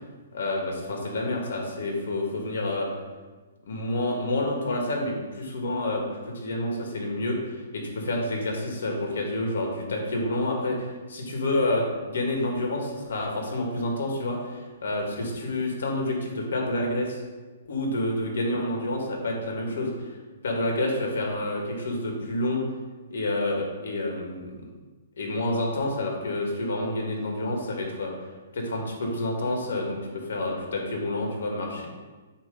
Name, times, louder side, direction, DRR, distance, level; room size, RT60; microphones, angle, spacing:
voice 1, 0.3-2.9 3.7-14.5 14.8-17.2 17.7-19.9 20.4-22.6 23.1-24.5 25.2-28.1 28.5-31.9, left 1 dB, 75° left, 0 dB, 1.8 m, -28 dB
7.7 x 2.9 x 5.3 m, 1.3 s
hypercardioid pair, 170°, 0 cm